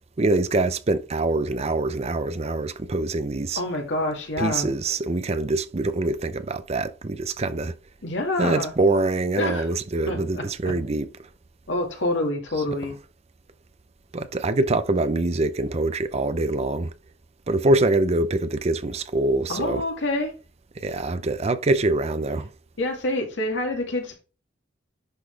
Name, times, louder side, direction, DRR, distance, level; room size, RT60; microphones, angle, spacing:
voice 1, 0.2-3.6 4.4-7.7 8.4-11.1 14.1-16.9 17.5-19.8 20.8-22.5, right 2 dB, 35° right, 0.5 m, -24 dB
voice 2, 3.6-4.7 8.0-8.7 9.4-9.7 10.1-10.8 11.7-13.0 19.5-20.3 22.8-24.2, left 1 dB, 80° left, 2.1 m, -27 dB
10.5 x 4.1 x 3.3 m
head